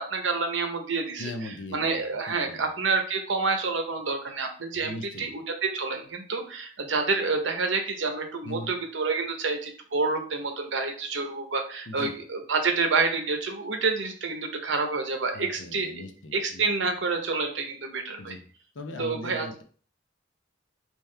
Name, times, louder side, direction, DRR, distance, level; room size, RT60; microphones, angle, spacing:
voice 1, 0.0-1.3 1.7-15.9 16.3-18.3 19.0-19.5, right 4 dB, 80° right, 4 dB, 0.8 m, -28 dB
voice 2, 1.2-2.0 2.3-2.7 4.8-5.3 8.4-8.7 11.9-12.1 15.3-16.7 18.2-18.5 18.7-19.6, left 1 dB, 85° left, 5 dB, 0.7 m, -39 dB
3.6 x 3.0 x 3.2 m, 0.43 s
head